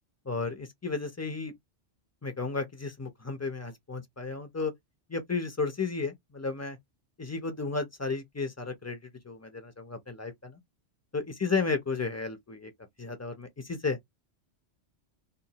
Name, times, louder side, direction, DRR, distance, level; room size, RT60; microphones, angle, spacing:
voice 1, 0.3-1.5 2.2-4.7 5.1-6.8 7.2-9.0 9.2-10.6 11.1-12.7 13.0-14.0, left 4 dB, 25° left, 0.3 m, -33 dB
2.5 x 2.4 x 2.8 m
omnidirectional pair, 1.2 m